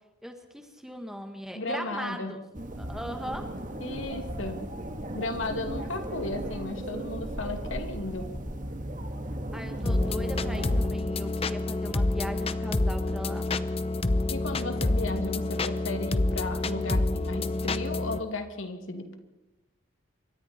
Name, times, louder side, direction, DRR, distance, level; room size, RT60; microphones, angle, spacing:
voice 1, 0.2-2.4 2.8-3.5 9.5-13.5, equal, ahead, 5 dB, 1.7 m, -39 dB
voice 2, 1.5-2.3 3.8-4.6 5.1-8.3 14.3-19.1, left 2 dB, 75° left, 5 dB, 2.6 m, -34 dB
sound 1, 2.5-10.9, right 1 dB, 40° right, 1.9 m, -36 dB
sound 2, 9.9-18.2, left 2 dB, 30° left, 0.7 m, -28 dB
26.0 x 23.5 x 4.4 m, 0.99 s
head